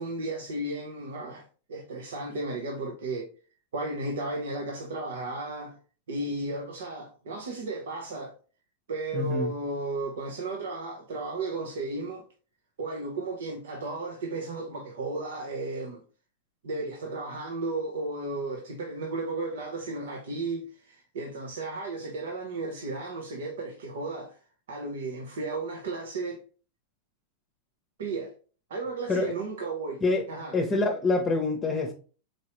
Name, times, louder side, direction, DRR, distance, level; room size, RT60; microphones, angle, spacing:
voice 1, 0.0-3.3 3.7-5.8 6.1-8.3 8.9-12.2 12.8-16.0 16.6-24.4 24.7-26.4 28.0-28.3 28.7-30.0 30.3-30.6, right 2 dB, 80° right, 1.0 m, -34 dB
voice 2, 9.1-9.5 29.1-29.3 30.0-30.2 30.5-31.9, left 3 dB, 20° left, 0.8 m, -26 dB
4.5 x 3.0 x 3.0 m
hypercardioid pair, 125°, 0 cm